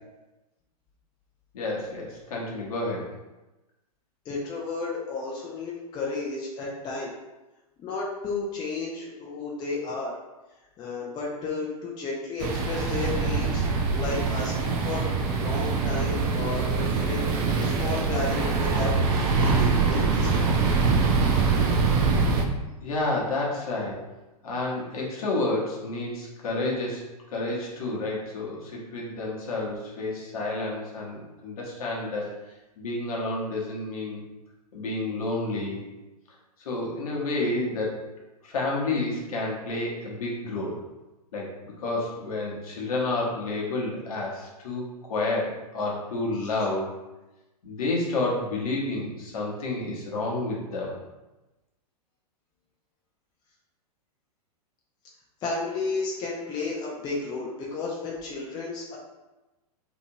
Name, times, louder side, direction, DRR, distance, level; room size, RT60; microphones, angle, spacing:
voice 1, 1.5-3.0 22.8-24.0 24.4-27.0 27.3-32.3 32.8-34.2 34.7-35.8 36.6-38.0 38.4-40.8 41.3-46.9 47.6-51.0, left 2 dB, 60° left, -3 dB, 1.0 m, -30 dB
voice 2, 4.2-7.1 7.8-10.2 10.8-13.6 13.9-17.3 17.6-20.7 46.4-46.5 55.4-59.0, left 3 dB, 20° left, -3 dB, 0.5 m, -33 dB
sound 1, 12.4-22.4, right 4 dB, 30° right, 0.4 m, -24 dB
2.8 x 2.6 x 2.6 m, 1.1 s
figure-of-eight pair, 105°, 20 cm